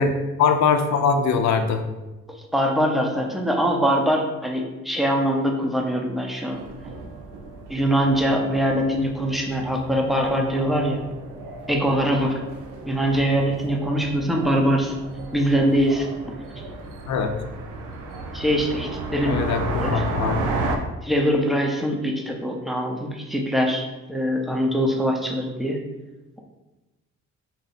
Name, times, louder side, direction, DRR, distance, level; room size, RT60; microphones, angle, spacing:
voice 1, 0.0-1.8 17.1-17.3 19.3-20.4, left 5 dB, 65° left, 7 dB, 0.6 m, -22 dB
voice 2, 2.5-6.6 7.7-11.0 11.7-12.4 12.9-15.0 15.3-16.1 18.3-19.4 19.8-20.1 21.0-25.8, equal, ahead, 0 dB, 0.7 m, -23 dB
sound 1, 6.5-20.8, right 2 dB, 90° right, 0.6 m, -34 dB
4.0 x 2.7 x 4.0 m, 1.1 s
cardioid pair, 90°, 30 cm